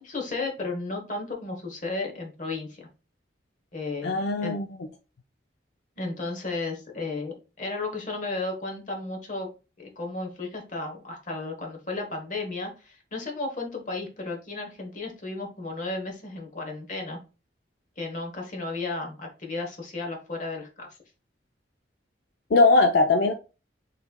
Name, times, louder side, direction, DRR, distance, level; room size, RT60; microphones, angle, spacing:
voice 1, 0.0-2.9 3.7-4.6 6.0-9.5 9.8-17.2 18.0-21.0, left 3 dB, 45° left, 1.1 m, -34 dB
voice 2, 4.0-4.7 22.5-23.3, left 3 dB, 70° left, 0.5 m, -20 dB
5.6 x 3.2 x 2.2 m
head